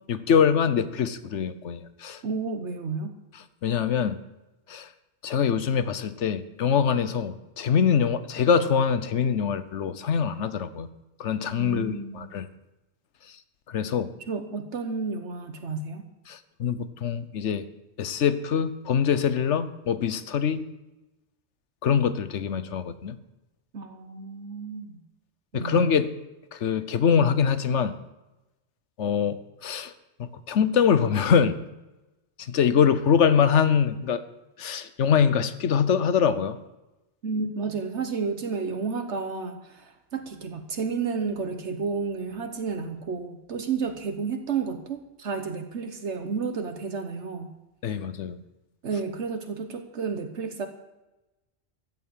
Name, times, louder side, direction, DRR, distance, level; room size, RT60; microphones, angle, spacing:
voice 1, 0.1-2.2 3.6-4.2 4.7-4.9 5.2-10.9 11.2-12.5 13.7-14.1 16.3-17.6 18.0-20.6 21.8-23.2 25.5-26.1 26.5-27.9 29.0-29.9 30.2-31.5 32.4-34.2 34.6-36.6 47.8-48.4, left 7 dB, 80° left, 13 dB, 1.2 m, -24 dB
voice 2, 2.2-3.1 11.6-12.3 14.3-16.0 23.7-25.0 25.5-25.9 37.2-47.5 47.9-48.0 48.8-50.7, right 5 dB, 75° right, 7 dB, 1.4 m, -31 dB
14.5 x 8.1 x 8.6 m, 1.0 s
omnidirectional pair, 1.2 m